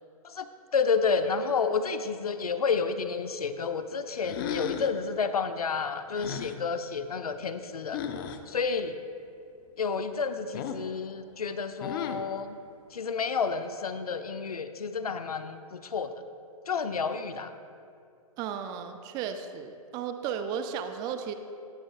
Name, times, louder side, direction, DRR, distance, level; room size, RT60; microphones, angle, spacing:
voice 1, 0.7-8.0 8.5-9.0 9.8-12.6 12.9-16.1 16.7-17.5, left 5 dB, 85° left, 10 dB, 0.6 m, -30 dB
sound 1, 4.2-5.0 6.1-6.6 7.9-8.4 10.5-10.9 11.8-12.3, left 8 dB, 40° left, 0.5 m, -35 dB
voice 2, 18.4-21.3, right 7 dB, 20° right, 8 dB, 0.4 m, -34 dB
17.0 x 6.3 x 2.4 m, 2.4 s
hypercardioid pair, 130°, 19 cm